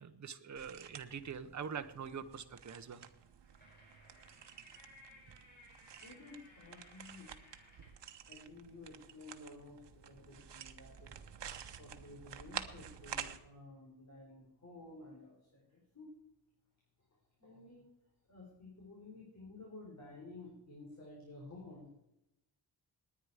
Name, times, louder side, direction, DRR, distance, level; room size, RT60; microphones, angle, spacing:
voice 1, 0.0-3.0, right 6 dB, 40° right, 8 dB, 1.0 m, -44 dB
sound 1, 0.6-13.4, right 8 dB, 70° right, 1.1 m, -50 dB
sound 2, 3.2-8.0, left 1 dB, 20° left, 5.9 m, -61 dB
voice 2, 6.0-7.5 8.3-16.2 17.4-17.8 18.3-22.0, left 2 dB, 40° left, -3 dB, 4.5 m, -53 dB
20.0 x 9.6 x 4.9 m, 0.85 s
wide cardioid pair, 150°, 43 cm